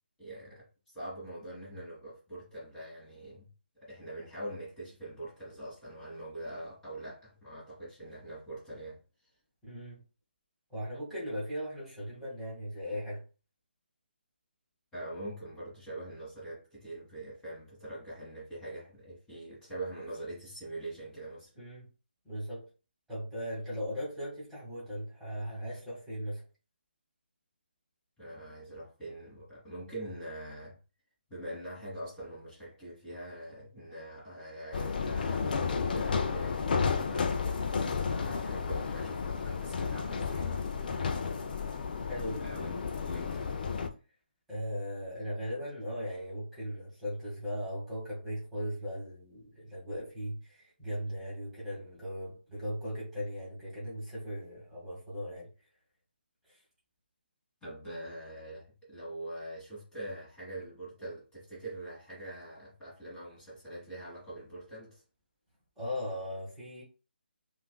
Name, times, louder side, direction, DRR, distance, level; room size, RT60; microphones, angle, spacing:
voice 1, 0.2-3.5 3.7-9.3 14.9-21.5 28.2-30.8 31.3-40.6 42.4-43.5 57.6-65.0, right 1 dB, 10° left, 1.7 m, -43 dB
voice 2, 9.6-10.0 10.7-13.2 21.5-21.9 22.2-22.7 23.1-26.4 40.7-41.1 42.0-42.5 44.5-55.5 56.4-56.6 65.8-66.8, equal, 5° right, 1.8 m, -38 dB
sound 1, 34.7-43.9, left 5 dB, 50° left, 0.6 m, -32 dB
5.5 x 2.6 x 2.3 m
figure-of-eight pair, 150°, 6 cm